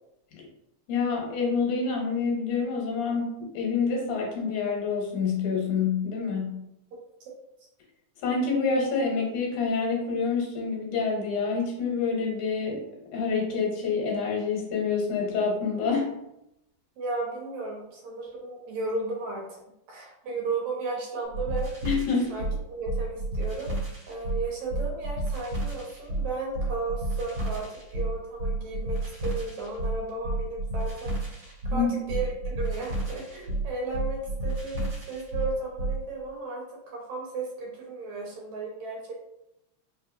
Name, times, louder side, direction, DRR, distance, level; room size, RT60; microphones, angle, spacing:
voice 1, 0.9-6.6 8.2-12.8 13.1-16.1 21.8-22.4 31.7-31.9, left 5 dB, 85° left, -1 dB, 2.6 m, -27 dB
voice 2, 17.0-19.4 19.9-21.7 22.3-23.7 24.1-39.1, right 3 dB, 70° right, -2 dB, 2.3 m, -34 dB
sound 1, 21.3-36.0, right 2 dB, 50° right, 2.1 m, -31 dB
5.2 x 3.2 x 2.6 m, 0.85 s
omnidirectional pair, 3.4 m